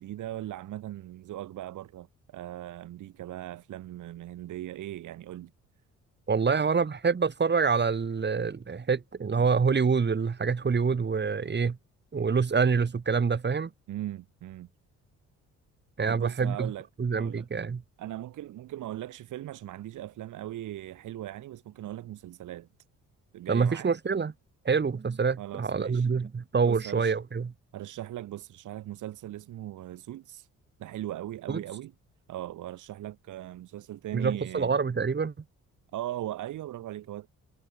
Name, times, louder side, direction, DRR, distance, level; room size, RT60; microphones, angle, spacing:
voice 1, 0.0-5.5 13.9-14.7 16.1-16.9 17.2-17.5 18.0-22.7 23.3-23.9 25.4-26.1 26.7-27.2 27.7-30.5 30.8-31.9 32.3-34.7 35.9-37.3, right 13 dB, 80° right, 3.8 m, -39 dB
voice 2, 6.3-11.8 12.1-13.7 16.0-16.7 17.0-17.8 23.5-24.3 24.7-27.5 31.5-31.6 34.1-35.3, right 5 dB, 35° right, 5.4 m, -26 dB
cardioid pair, 90°, 30 cm